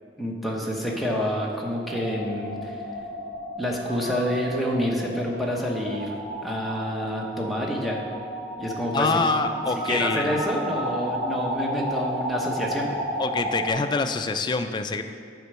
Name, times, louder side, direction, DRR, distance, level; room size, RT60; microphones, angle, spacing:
voice 1, 0.2-2.8 3.6-6.1 6.4-8.0 8.6-9.2 9.9-12.9, equal, ahead, -2 dB, 0.9 m, -28 dB
sound 1, 1.9-13.7, equal, 20° right, 1.6 m, -32 dB
voice 2, 8.9-10.4 13.2-15.0, left 3 dB, 25° left, 7 dB, 0.3 m, -25 dB
8.2 x 4.4 x 6.1 m, 2.3 s
head